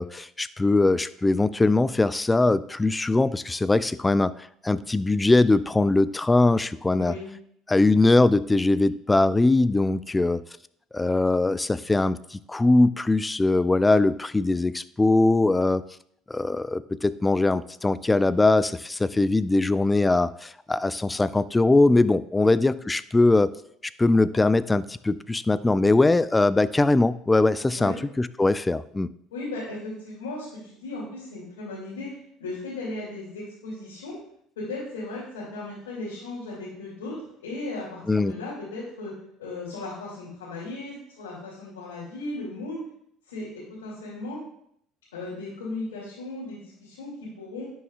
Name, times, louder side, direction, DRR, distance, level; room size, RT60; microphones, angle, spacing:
voice 1, 0.0-4.3 4.6-7.1 7.7-10.4 10.9-15.8 16.3-23.5 24.0-29.1 38.1-38.3, left 2 dB, 15° left, 17 dB, 0.4 m, -21 dB
voice 2, 7.0-7.3 22.4-22.5 27.7-28.0 29.3-32.1 32.4-34.2 34.6-39.1 39.4-42.8 43.3-44.4 45.1-47.7, left 2 dB, 90° left, -8 dB, 2.5 m, -36 dB
11.0 x 6.2 x 2.4 m, 0.69 s
hypercardioid pair, 70°, 0 cm